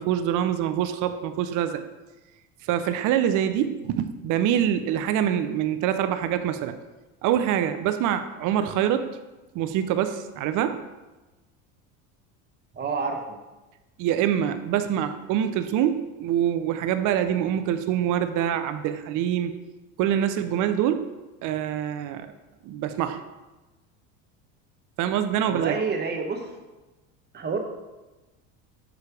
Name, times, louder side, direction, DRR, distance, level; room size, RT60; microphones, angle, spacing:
voice 1, 0.0-1.8 2.7-6.7 7.2-9.1 9.5-10.8 14.0-19.5 20.0-21.1 21.4-22.3 22.6-23.2 25.0-25.7, right 10 dB, 50° right, 9 dB, 0.6 m, -25 dB
voice 2, 12.7-13.4 25.4-26.5 27.3-27.6, right 4 dB, 25° right, 3 dB, 1.0 m, -28 dB
6.8 x 3.1 x 4.8 m, 1.1 s
supercardioid pair, 105°, 40 cm